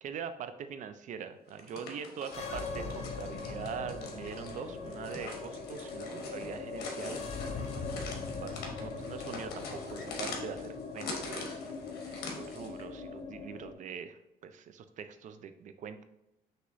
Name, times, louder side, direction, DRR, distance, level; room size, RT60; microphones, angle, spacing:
voice 1, 0.0-7.6 8.4-16.0, right 7 dB, 50° right, 11 dB, 0.4 m, -43 dB
sound 1, 1.5-12.8, left 3 dB, 70° left, 1.0 m, -44 dB
sound 2, 2.2-13.7, left 4 dB, 40° left, 0.5 m, -40 dB
6.2 x 2.9 x 2.6 m, 0.89 s
cardioid pair, 110°, 17 cm